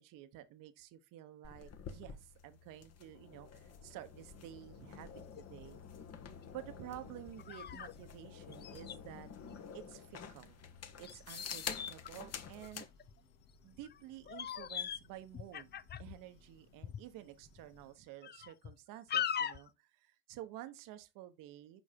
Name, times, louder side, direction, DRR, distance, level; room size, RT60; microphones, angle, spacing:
voice 1, 0.0-5.8 6.5-9.3 9.7-10.6 11.0-12.9 13.6-15.7 16.0-21.8, right 13 dB, 70° right, 1.1 m, -51 dB
sound 1, 1.4-12.9, left 7 dB, 45° left, 1.6 m, -49 dB
Church bell, 3.4-18.2, left 3 dB, 80° left, 2.1 m, -65 dB
sound 2, 4.6-4.7 5.2-5.4 6.0-6.1 7.0-7.9 8.2-8.3 8.5-9.0 11.0-13.1 13.8-14.0 14.3-15.1 15.3-16.2 16.8-17.0 17.6-17.7 18.2-18.7 19.1-19.7, left 8 dB, 30° left, 0.5 m, -40 dB
6.2 x 5.2 x 5.2 m
hypercardioid pair, 70°, 34 cm